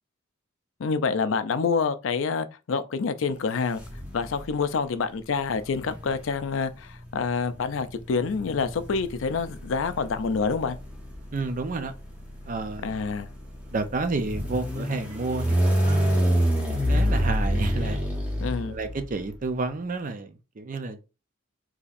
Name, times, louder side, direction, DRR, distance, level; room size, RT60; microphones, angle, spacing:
voice 1, 0.8-3.8 4.1-10.8 12.8-13.3 18.4-18.8, left 5 dB, 75° left, 0.4 m, -27 dB
sound 1, 3.8-4.5 5.5-19.2, equal, 5° right, 1.1 m, -28 dB
voice 2, 11.3-11.9 12.5-12.9 13.7-16.2 16.9-18.0 18.7-21.0, right 3 dB, 40° right, 0.5 m, -30 dB
4.0 x 2.9 x 2.5 m
head